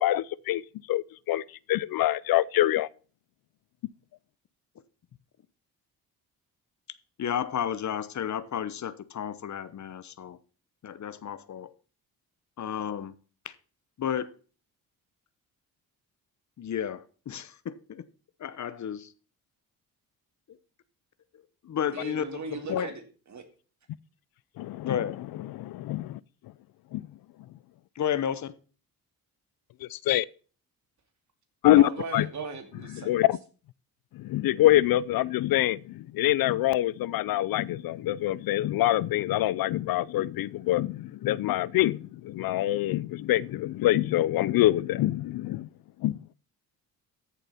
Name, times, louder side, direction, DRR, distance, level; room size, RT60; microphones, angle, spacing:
voice 1, 0.0-1.4 1.7-2.9 22.7-22.8 24.6-25.0 25.5-26.2 26.9-27.1 29.8-30.2 31.6-32.3 32.9-33.4 34.2-45.7 46.0-46.2, left 15 dB, 70° left, 0.5 m, -25 dB
voice 2, 7.2-10.4 10.8-11.7 12.6-13.1 13.4-13.5 14.0-14.3 16.6-18.0 18.4-19.1 20.5-20.6 21.6-22.9 24.8-25.1 27.9-28.5, left 9 dB, 50° left, 1.0 m, -32 dB
voice 3, 21.9-23.0 23.3-23.4 31.8-33.1, right 4 dB, 50° right, 2.7 m, -37 dB
14.0 x 7.1 x 4.2 m
cardioid pair, 100°, 37 cm